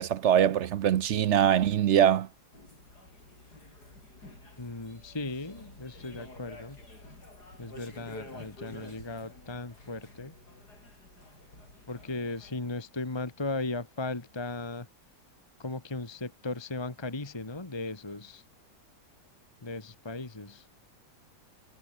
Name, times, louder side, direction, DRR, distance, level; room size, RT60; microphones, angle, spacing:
voice 1, 0.0-2.3, right 10 dB, 60° right, 0.7 m, -23 dB
sound 1, 2.5-12.6, left 2 dB, 70° left, 7.6 m, -50 dB
voice 2, 4.6-6.8 7.6-10.3 11.9-14.9 15.6-18.4 19.6-20.7, left 2 dB, 15° left, 1.5 m, -37 dB
omnidirectional pair, 1.8 m